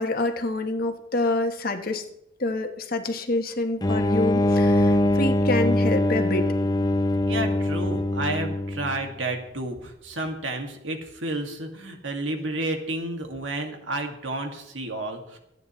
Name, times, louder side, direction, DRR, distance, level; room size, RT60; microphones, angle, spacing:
voice 1, 0.0-2.0 2.4-6.5, left 2 dB, 50° left, 6 dB, 1.3 m, -27 dB
sound 1, 3.8-9.2, left 1 dB, 20° left, 0.7 m, -23 dB
voice 2, 7.3-15.4, right 2 dB, 80° right, 3 dB, 2.2 m, -31 dB
26.5 x 9.3 x 3.2 m, 0.82 s
head